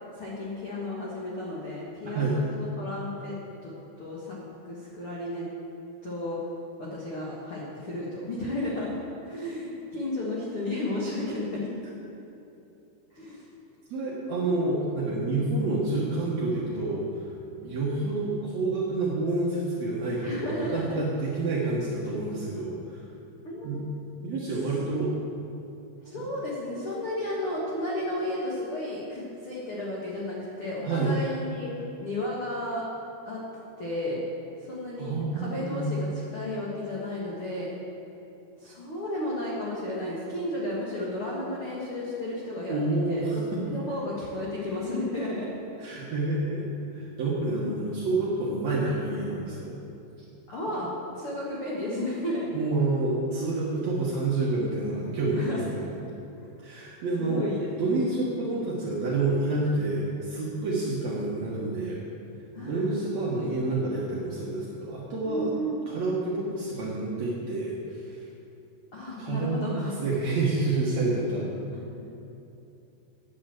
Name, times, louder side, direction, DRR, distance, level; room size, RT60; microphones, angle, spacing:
voice 1, 0.2-3.4 3.6-3.7 4.0-4.4 4.6-5.5 6.0-6.4 6.8-9.0 9.2-11.7 13.1-13.4 20.2-20.8 22.2-22.5 23.4-23.8 26.0-31.7 32.0-32.9 33.2-33.4 33.8-34.2 34.7-36.1 36.3-37.7 38.6-42.8 43.1-43.3 43.7-45.5 47.5-47.9 50.5-50.9 51.1-52.5 55.1-55.6 57.2-57.7 62.5-63.4 65.2-66.0 68.9-69.9 71.7-72.1, left 1 dB, 70° left, -6 dB, 1.3 m, -33 dB
voice 2, 13.9-17.2 17.6-23.0 23.6-23.8 24.2-25.1 26.2-26.3 30.8-31.1 35.0-36.0 42.7-43.6 45.8-49.7 52.5-55.9 56.6-62.0 62.6-65.5 65.9-68.2 69.2-71.5, right 2 dB, 70° right, -6 dB, 1.6 m, -28 dB
9.1 x 9.0 x 7.7 m, 2.8 s
omnidirectional pair, 5.2 m